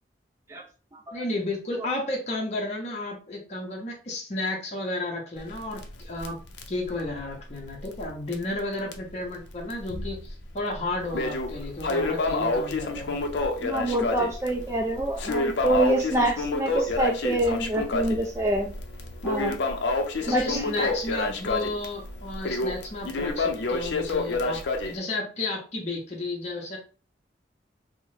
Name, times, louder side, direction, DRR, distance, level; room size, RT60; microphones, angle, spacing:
voice 1, 1.1-6.4 6.7-13.2 20.2-26.8, left 2 dB, 40° left, -2 dB, 0.6 m, -32 dB
Crackle, 5.4-8.1 8.3-8.4 8.9-9.0 9.7-10.3 10.7-25.0, left 3 dB, 80° left, 0.5 m, -28 dB
voice 2, 13.6-18.7 19.2-19.6 20.3-20.4, right 1 dB, 15° right, 1 dB, 0.3 m, -26 dB
3.6 x 2.1 x 3.0 m, 0.37 s
head